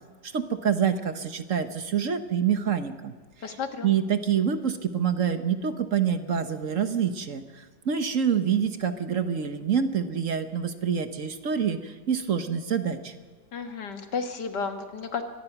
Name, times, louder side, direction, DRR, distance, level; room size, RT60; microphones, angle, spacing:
voice 1, 0.2-3.1 3.4-3.6 3.8-13.1, right 7 dB, 50° right, 9 dB, 1.3 m, -26 dB
voice 2, 3.4-3.9 13.5-15.2, left 5 dB, 75° left, 6 dB, 2.2 m, -32 dB
24.0 x 19.0 x 5.9 m, 1.5 s
omnidirectional pair, 1.8 m